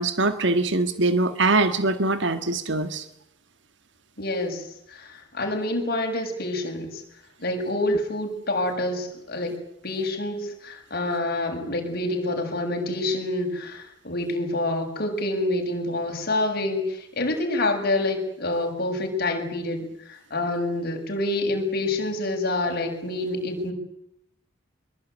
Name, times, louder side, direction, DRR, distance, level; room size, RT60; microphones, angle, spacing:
voice 1, 0.0-3.1, right 2 dB, 65° right, 10 dB, 1.7 m, -23 dB
voice 2, 4.2-7.0 7.4-9.5 9.8-23.7, left 2 dB, 50° left, 2 dB, 7.0 m, -27 dB
25.5 x 22.0 x 9.5 m, 0.79 s
head